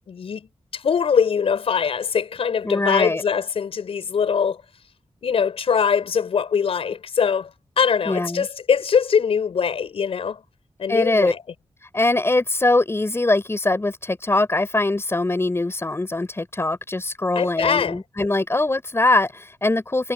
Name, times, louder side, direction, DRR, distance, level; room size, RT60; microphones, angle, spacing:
voice 1, 0.1-4.6 5.2-7.5 7.8-10.4 10.8-11.4 17.4-18.0, left 6 dB, 90° left, 6.0 m, -22 dB
voice 2, 2.6-3.2 8.1-8.5 10.9-11.3 11.9-20.1, left 2 dB, 25° left, 5.5 m, -22 dB
wide cardioid pair, 75°, 10 cm